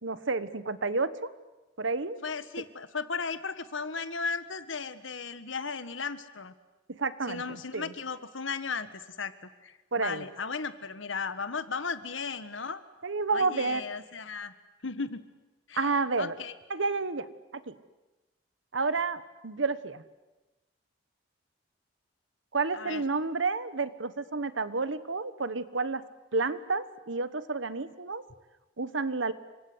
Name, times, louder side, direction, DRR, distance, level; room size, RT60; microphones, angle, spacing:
voice 1, 0.0-1.1 1.8-2.2 6.9-7.9 9.9-10.2 13.0-13.8 15.7-16.3 16.7-17.3 17.7-17.8 18.7-20.0 22.5-26.0 26.3-28.2 28.8-29.3, right 4 dB, 75° right, 14 dB, 1.3 m, -30 dB
voice 2, 2.2-6.5 7.3-9.3 9.6-12.8 13.3-14.5 14.8-15.2 15.7-16.5 22.7-23.0, left 5 dB, 75° left, 12 dB, 1.6 m, -36 dB
29.0 x 25.5 x 8.1 m, 1.1 s
head